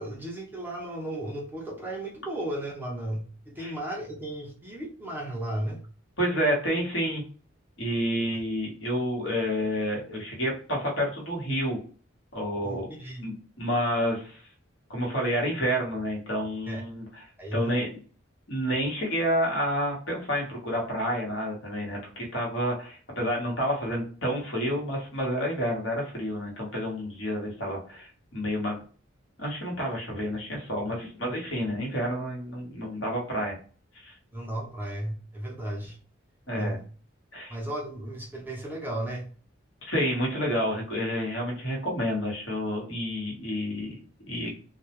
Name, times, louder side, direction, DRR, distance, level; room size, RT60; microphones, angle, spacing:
voice 1, 0.0-5.8 8.3-8.4 12.6-13.3 16.7-16.8 17.4-17.8 34.3-36.0 36.5-36.8 37.5-39.3, right 1 dB, 10° right, -1 dB, 0.4 m, -34 dB
voice 2, 6.2-7.2 7.8-11.8 12.3-12.9 13.2-14.4 14.9-17.0 17.5-18.0 18.5-22.0 22.3-28.8 29.4-33.5 34.0-34.1 36.5-36.8 37.3-37.6 39.8-43.9 44.3-44.5, equal, 70° left, -2 dB, 1.0 m, -29 dB
2.2 x 2.1 x 2.9 m, 0.41 s
head